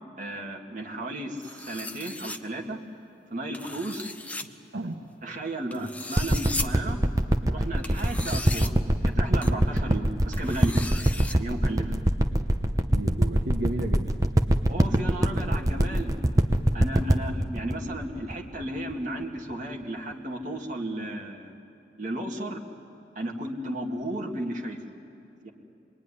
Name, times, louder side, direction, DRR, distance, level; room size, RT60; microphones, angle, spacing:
voice 1, 0.2-2.8 3.3-4.1 5.2-7.0 7.5-8.8 9.0-10.8 11.3-11.9 14.7-16.1 16.7-21.5 22.0-22.6 23.2-24.8 25.4-25.5, right 1 dB, 45° right, 0 dB, 2.2 m, -34 dB
sound 1, 1.4-2.4 3.5-4.4 5.7-6.7 7.8-8.7 9.4-9.5 10.3-11.3, left 2 dB, 10° left, 0.7 m, -36 dB
voice 2, 4.4-5.0 5.8-5.9 12.9-14.1, right 1 dB, 70° right, 3 dB, 1.3 m, -33 dB
sound 2, 6.2-18.9 19.5-19.6, right 1 dB, 20° right, 0.9 m, -23 dB
26.5 x 21.0 x 9.9 m, 2.8 s
head